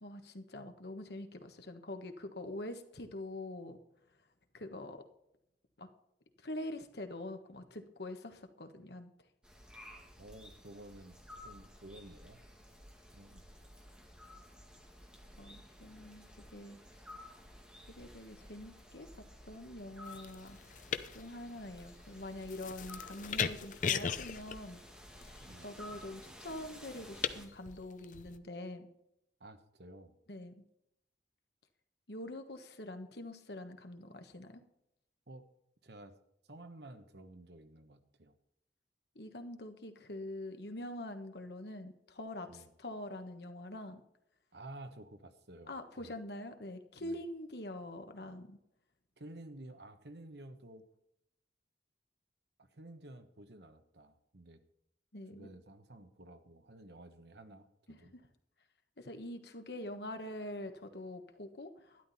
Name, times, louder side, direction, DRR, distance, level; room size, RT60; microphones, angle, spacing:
voice 1, 0.0-3.8 4.5-5.1 5.8-5.9 6.4-9.1 15.4-16.8 17.9-20.6 21.1-24.8 25.6-28.9 30.3-30.6 32.1-34.6 39.1-44.0 45.7-48.6 55.1-55.5 57.9-58.3 59.0-62.1, left 1 dB, 65° left, 7 dB, 1.4 m, -45 dB
sound 1, 9.4-27.5, left 1 dB, 5° right, 1.9 m, -54 dB
voice 2, 10.2-11.2 11.4-12.4 13.1-13.4 25.4-25.7 29.4-30.1 35.3-35.5 35.8-36.2 36.5-38.3 42.5-42.7 44.5-46.1 47.0-47.2 49.2-50.8 52.6-54.6 55.3-58.1, right 1 dB, 70° right, 9 dB, 1.2 m, -52 dB
sound 2, 20.1-28.4, left 7 dB, 45° left, 0.6 m, -39 dB
12.0 x 11.0 x 4.2 m, 0.80 s
head